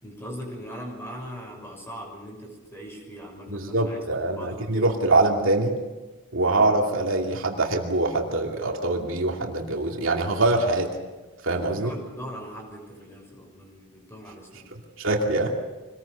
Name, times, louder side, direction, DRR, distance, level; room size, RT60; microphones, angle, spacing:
voice 1, 0.0-5.0 11.6-14.7, equal, 10° left, 1 dB, 6.3 m, -40 dB
voice 2, 3.5-5.7 6.3-10.9 11.4-11.9 15.0-15.5, right 2 dB, 65° right, 1 dB, 2.6 m, -24 dB
25.5 x 20.5 x 6.9 m, 1.2 s
head